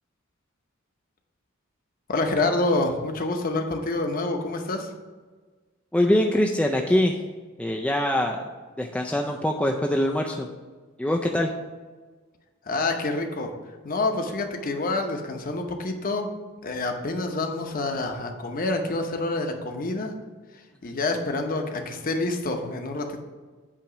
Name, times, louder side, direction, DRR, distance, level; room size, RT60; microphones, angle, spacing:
voice 1, 2.1-4.9 12.7-13.5 13.8-16.3 16.6-20.1 20.8-23.2, left 2 dB, 40° left, 4 dB, 0.8 m, -27 dB
voice 2, 5.9-7.2 7.6-8.4 8.8-10.5 11.0-11.5, left 1 dB, 5° left, 1 dB, 0.3 m, -23 dB
8.5 x 3.0 x 5.9 m, 1.4 s
head